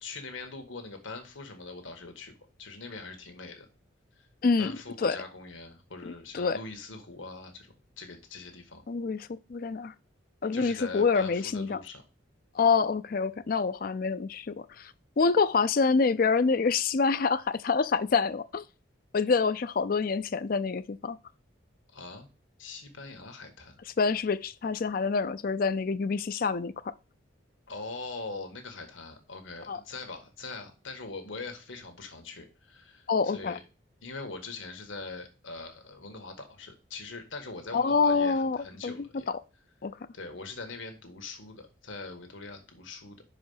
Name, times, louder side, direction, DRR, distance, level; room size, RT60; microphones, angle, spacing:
voice 1, 0.0-2.3 2.6-3.7 4.6-7.7 8.0-8.8 10.5-12.0 21.9-22.3 22.6-23.8 27.7-33.6 34.0-39.3 40.1-43.2, left 3 dB, 80° left, 1.6 m, -42 dB
voice 2, 8.9-9.9 10.4-11.8 12.6-14.9 15.2-18.6 19.1-21.2 24.0-26.9 29.7-29.8 33.1-33.6 37.7-38.6 38.8-39.4 39.8-39.9, left 4 dB, 45° left, 0.4 m, -26 dB
5.6 x 5.0 x 5.5 m
head